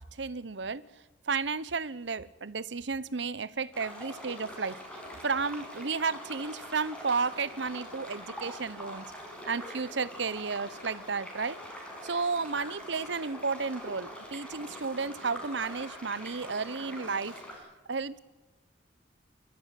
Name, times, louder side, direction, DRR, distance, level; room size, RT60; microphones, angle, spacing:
voice 1, 0.2-0.8 1.3-4.8 5.2-9.0 9.5-11.6 12.0-17.4 17.9-18.2, right 4 dB, 75° right, 18 dB, 0.9 m, -32 dB
sound 1, 3.7-17.5, equal, 5° left, 6.5 m, -44 dB
27.5 x 14.0 x 9.2 m, 1.2 s
head